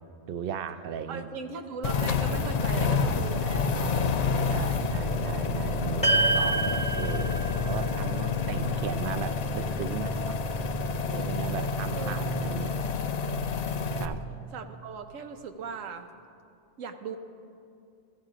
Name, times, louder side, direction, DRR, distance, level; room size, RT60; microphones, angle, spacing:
voice 1, 0.3-1.3 4.4-10.4 11.1-12.7 13.9-14.2, right 7 dB, 60° right, 9 dB, 0.6 m, -36 dB
voice 2, 1.1-4.5 11.5-11.6 11.9-12.2 13.7-14.2 14.5-16.1 16.8-17.2, right 5 dB, 85° right, 6 dB, 1.1 m, -39 dB
sound 1, 1.8-14.1, left 4 dB, 75° left, 0.3 m, -28 dB
sound 2, 6.0-10.5, right 2 dB, 5° left, 1.0 m, -30 dB
15.5 x 15.0 x 2.5 m, 2.5 s
omnidirectional pair, 1.3 m